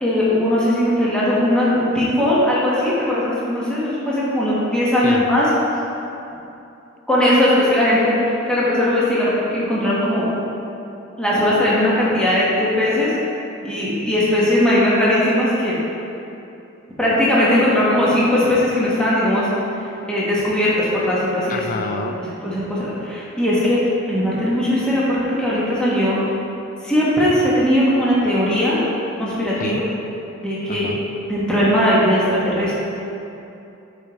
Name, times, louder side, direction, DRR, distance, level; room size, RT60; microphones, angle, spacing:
voice 1, 0.0-5.5 7.1-10.2 11.2-13.1 13.6-15.7 17.0-19.5 20.1-21.6 22.4-23.8 24.0-26.2 26.8-28.8 29.2-29.8 30.4-30.9 31.3-32.7, left 1 dB, 5° left, -8 dB, 1.1 m, -19 dB
voice 2, 21.5-22.2 29.6-29.8 30.7-31.0, left 4 dB, 40° left, 5 dB, 0.3 m, -28 dB
8.9 x 4.8 x 3.0 m, 2.8 s
head